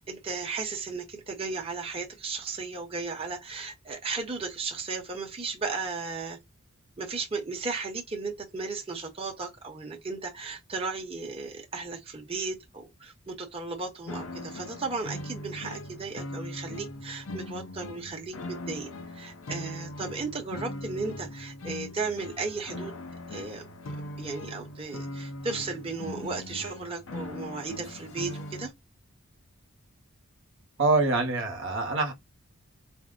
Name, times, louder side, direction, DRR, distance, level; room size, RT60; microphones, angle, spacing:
voice 1, 0.0-6.4 7.0-23.0 23.3-23.6 24.2-28.7, right 4 dB, 25° right, 0.9 m, -35 dB
sound 1, 14.1-28.7, left 1 dB, 65° left, 0.7 m, -40 dB
voice 2, 30.8-32.1, right 3 dB, 60° right, 0.8 m, -25 dB
4.3 x 2.0 x 3.7 m
head